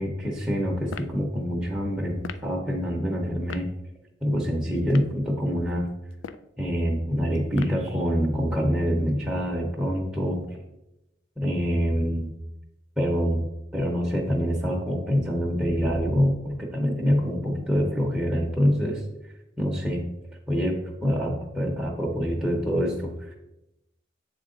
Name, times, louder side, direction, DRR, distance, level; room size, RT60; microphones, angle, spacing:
voice 1, 0.0-3.7 4.2-5.9 6.6-10.4 11.4-12.3 13.0-13.5 13.7-19.0 19.6-20.0 20.5-23.3, equal, 5° right, -3 dB, 0.7 m, -25 dB
sound 1, 0.9-1.2 2.2-2.5 3.5-3.7 4.8-5.2 6.1-6.5 7.5-7.9, left 6 dB, 90° left, 0.3 m, -38 dB
7.6 x 3.7 x 3.7 m, 0.91 s
head